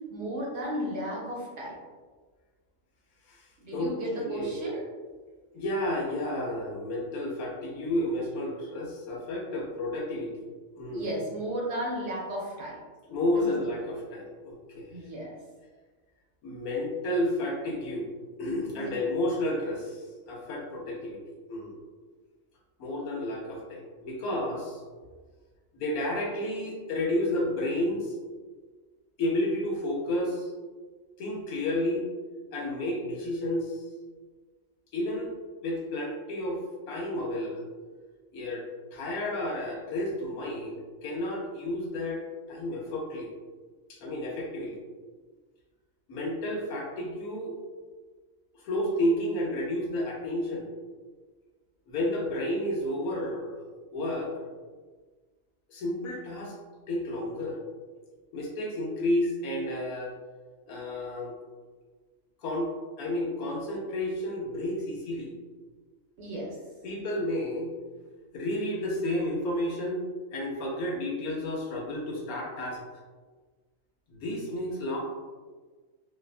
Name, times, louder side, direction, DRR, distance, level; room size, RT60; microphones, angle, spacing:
voice 1, 0.1-1.8 3.6-4.8 10.9-12.8 13.4-13.5 14.9-15.4 18.7-18.9 66.2-66.6, right 1 dB, 65° right, -4 dB, 0.8 m, -34 dB
voice 2, 3.3-4.6 5.5-10.5 10.8-11.1 13.1-15.0 16.4-18.1 18.4-21.8 22.8-24.8 25.7-28.1 29.2-30.5 31.2-32.1 32.5-33.8 34.9-35.3 35.6-36.6 36.9-37.6 38.3-38.7 38.9-43.3 43.9-44.8 46.1-47.6 48.6-50.6 51.9-53.6 53.9-54.3 55.7-56.5 56.9-57.6 58.3-60.1 60.7-61.3 62.4-62.7 63.0-65.3 66.8-67.7 68.3-70.0 70.3-72.8 74.1-75.0, left 1 dB, 90° left, -1 dB, 1.1 m, -31 dB
2.6 x 2.2 x 2.4 m, 1.4 s
omnidirectional pair, 1.5 m